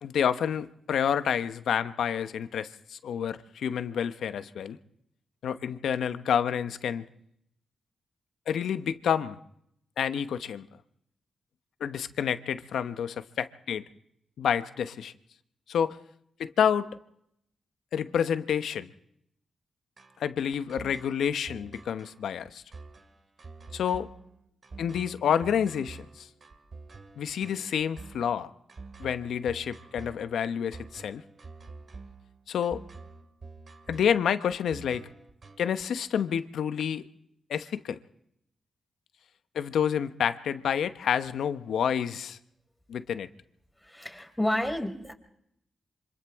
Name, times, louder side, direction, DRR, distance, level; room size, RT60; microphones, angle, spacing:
voice 1, 0.0-4.8 5.4-7.0 8.5-9.4 10.0-10.7 11.8-13.8 14.4-15.1 15.7-16.0 16.4-16.9 17.9-18.9 20.2-22.6 23.7-24.1 24.8-26.3 27.2-28.5 29.0-31.2 32.5-32.8 33.9-35.1 35.6-37.0 37.5-38.0 39.5-42.4 42.9-43.3, left 8 dB, 85° left, 0.9 m, -29 dB
sound 1, 20.0-35.8, right 3 dB, 50° right, 2.3 m, -47 dB
voice 2, 43.8-45.1, left 1 dB, 5° left, 4.3 m, -30 dB
28.0 x 25.5 x 3.6 m
cardioid pair, 60°, 0 cm